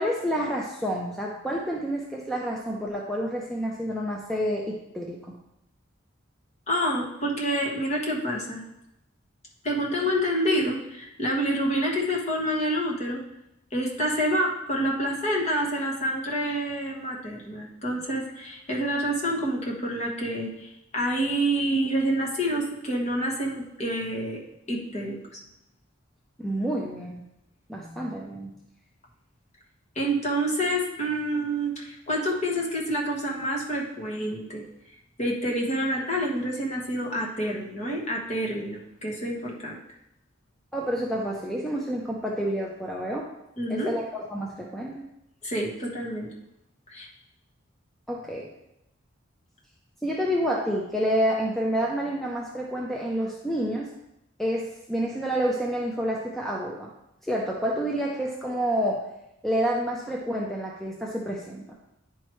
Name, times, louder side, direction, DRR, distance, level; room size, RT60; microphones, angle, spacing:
voice 1, 0.0-5.4 26.4-27.2 27.7-28.5 40.7-43.3 43.7-45.0 48.1-48.5 50.0-53.9 54.4-56.9 57.2-59.1 59.4-61.8, equal, ahead, -2 dB, 0.5 m, -29 dB
voice 2, 6.7-8.6 9.6-13.2 13.7-24.4 24.7-25.4 29.9-34.6 35.2-39.8 43.6-43.9 45.4-46.3 46.9-47.1, equal, 35° left, -2 dB, 1.3 m, -28 dB
9.9 x 4.5 x 3.1 m, 0.85 s
head